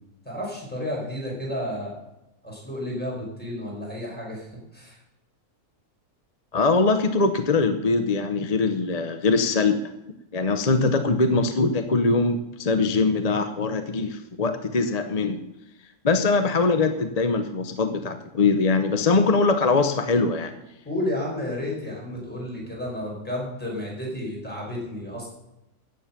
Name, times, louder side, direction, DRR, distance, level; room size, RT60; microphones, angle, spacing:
voice 1, 0.3-2.0 2.4-4.5 4.7-5.0 20.8-25.3, left 1 dB, 5° left, -3 dB, 5.2 m, -31 dB
voice 2, 6.5-9.8 10.3-15.4 16.0-20.5, left 3 dB, 35° left, 8 dB, 0.8 m, -22 dB
14.0 x 9.5 x 5.9 m, 0.87 s
omnidirectional pair, 1.5 m